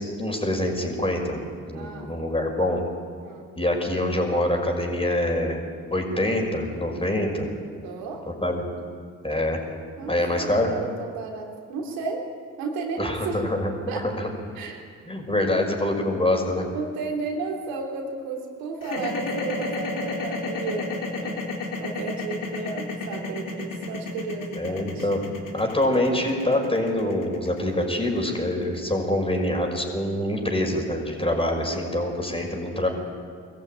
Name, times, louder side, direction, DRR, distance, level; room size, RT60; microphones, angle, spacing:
voice 1, 0.2-1.4 1.7-2.8 3.6-5.6 5.9-7.5 8.3-8.6 9.2-9.6 10.1-10.7 13.0-14.3 15.1-16.7 24.6-25.2 25.5-32.9, left 1 dB, 15° left, 2 dB, 5.8 m, -25 dB
voice 2, 1.7-2.1 3.2-3.5 7.8-8.2 10.0-12.2 12.6-13.5 13.9-14.2 14.6-14.8 15.5-15.7 16.7-20.9 21.2-25.1, right 4 dB, 90° right, 0 dB, 3.4 m, -33 dB
sound 1, 18.8-29.0, left 3 dB, 70° left, 3.6 m, -31 dB
22.0 x 14.5 x 9.1 m, 2.1 s
supercardioid pair, 60°, 34 cm